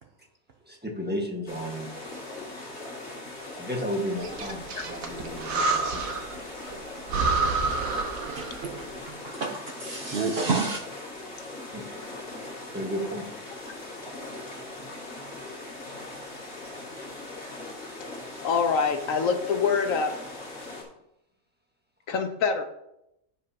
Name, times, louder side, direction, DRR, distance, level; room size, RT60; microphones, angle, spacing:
voice 1, 0.7-1.9 3.6-6.2 11.7-11.8 12.7-13.3 22.1-22.2, equal, 5° right, -1 dB, 1.3 m, -33 dB
sound 1, 1.5-20.8, left 2 dB, 45° left, 2.5 m, -40 dB
Breathing, 4.2-6.4 6.7-6.8 7.1-8.8, right 4 dB, 70° right, 1.4 m, -28 dB
voice 2, 8.3-10.8, right 4 dB, 50° right, 3 dB, 0.9 m, -30 dB
voice 3, 18.4-20.2 22.1-22.6, left 5 dB, 70° left, 7 dB, 1.1 m, -25 dB
15.5 x 5.3 x 2.8 m, 0.82 s
omnidirectional pair, 1.5 m